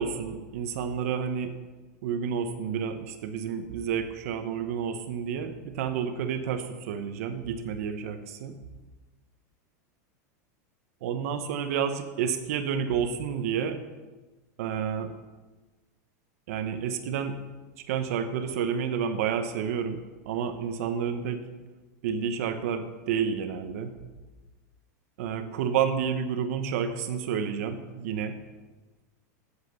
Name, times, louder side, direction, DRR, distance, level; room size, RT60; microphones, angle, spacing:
voice 1, 0.0-1.5 2.0-8.6 11.0-13.8 14.6-15.1 16.5-17.4 17.9-20.0 20.2-21.4 22.0-23.9 25.2-28.4, right 7 dB, 55° right, 8 dB, 0.9 m, -30 dB
8.0 x 8.0 x 6.8 m, 1.2 s
supercardioid pair, 180°, 9 cm